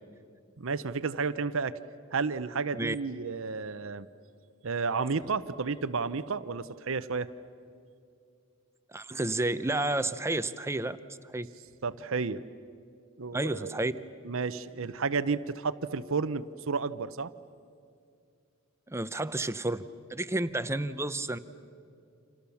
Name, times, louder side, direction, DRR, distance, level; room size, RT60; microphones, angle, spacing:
voice 1, 0.6-1.8 2.1-4.1 4.6-7.3 11.8-12.4 13.2-13.7 14.2-17.3, right 4 dB, 65° right, 13 dB, 0.8 m, -32 dB
voice 2, 8.9-11.0 11.3-11.5 13.3-13.9 18.9-21.4, right 2 dB, 15° right, 12 dB, 0.7 m, -31 dB
29.5 x 27.0 x 7.1 m, 2.4 s
head